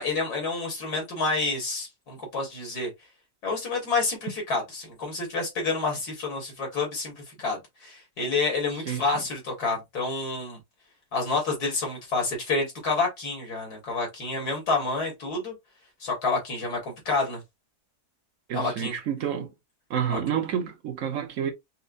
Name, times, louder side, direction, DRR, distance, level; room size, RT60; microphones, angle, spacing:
voice 1, 0.0-2.9 3.4-10.6 11.1-15.5 16.0-17.4 18.5-18.9 20.1-20.2, left 3 dB, 85° left, 2.3 m, -29 dB
voice 2, 18.5-19.5 19.9-21.5, right 8 dB, 60° right, 1.2 m, -29 dB
5.5 x 2.1 x 2.5 m
omnidirectional pair, 1.6 m